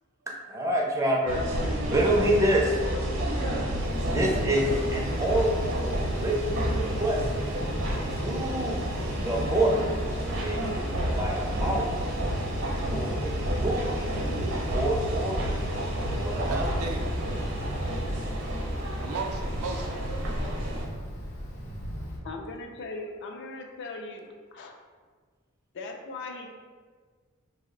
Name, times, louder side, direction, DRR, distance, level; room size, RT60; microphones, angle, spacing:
voice 1, 0.3-1.4 1.9-3.0 4.1-5.5 5.8-7.2 8.1-9.8 10.3-10.8 11.1-12.0 12.9-14.2 14.7-15.5 16.1-16.7, right 1 dB, 15° right, -2 dB, 0.4 m, -27 dB
sound 1, 1.3-20.9, equal, 65° right, 0.7 m, -30 dB
Wind, 3.8-22.2, equal, 85° left, 0.7 m, -38 dB
voice 2, 16.5-17.1 19.0-20.0, right 4 dB, 85° right, 5 dB, 0.3 m, -35 dB
voice 3, 22.2-24.7 25.7-26.5, left 3 dB, 60° left, 2 dB, 0.4 m, -39 dB
2.6 x 2.0 x 3.7 m, 1.5 s
head